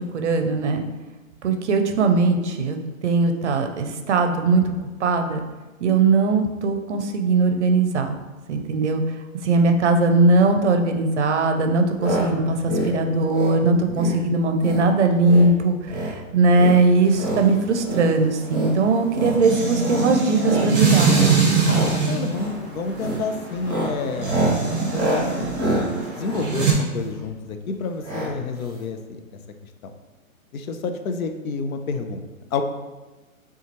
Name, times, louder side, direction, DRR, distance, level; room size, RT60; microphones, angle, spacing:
voice 1, 0.1-0.8 1.4-4.7 5.0-5.4 5.8-8.2 8.5-9.0 9.4-15.7 16.0-21.2, right 3 dB, 55° right, 6 dB, 0.5 m, -20 dB
sound 1, 12.0-12.3 12.6-12.9 13.3-13.6 13.9-14.2 14.6-14.9 15.2-15.5 15.8-16.1 16.5-17.4 17.8-18.1 18.4-18.7 19.1-19.4 19.8-20.1 20.4-20.7 21.0-21.3 21.6-21.9 22.3-22.6 22.9-23.2 23.6-27.3 28.0-28.3 28.6-28.7 28.9-29.0, right 1 dB, 15° left, 0.4 m, -27 dB
sound 2, 17.0-26.7, right 5 dB, 15° right, 0.8 m, -24 dB
voice 2, 21.6-24.3 24.7-29.2 29.8-29.9 30.5-32.2 32.5-32.6, left 4 dB, 80° left, 7 dB, 0.6 m, -29 dB
5.6 x 2.4 x 3.0 m, 1.2 s
hypercardioid pair, 160°, 42 cm